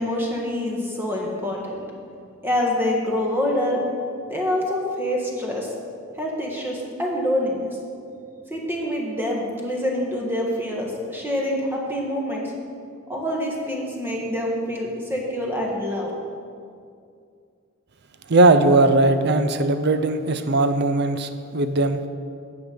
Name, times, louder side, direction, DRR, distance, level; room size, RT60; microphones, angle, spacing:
voice 1, 0.0-1.8 2.4-3.8 4.3-5.7 6.2-7.8 8.5-12.5 13.1-16.1, left 1 dB, 10° right, -2 dB, 1.5 m, -26 dB
voice 2, 18.3-22.0, right 2 dB, 55° right, 10 dB, 0.6 m, -19 dB
9.5 x 7.8 x 5.1 m, 2.4 s
head